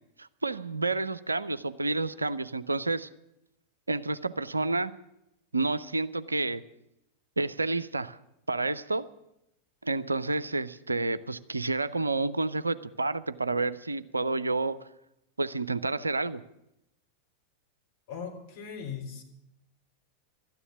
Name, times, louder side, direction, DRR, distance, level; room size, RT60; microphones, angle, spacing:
voice 1, 0.2-3.1 3.9-4.9 5.5-6.6 7.4-8.2 8.5-9.1 9.8-14.8 15.4-16.4, right 3 dB, 80° right, 15 dB, 0.5 m, -29 dB
voice 2, 18.1-19.2, left 6 dB, 50° left, 0 dB, 3.5 m, -39 dB
13.0 x 9.8 x 9.9 m, 0.86 s
figure-of-eight pair, 90°, 0 cm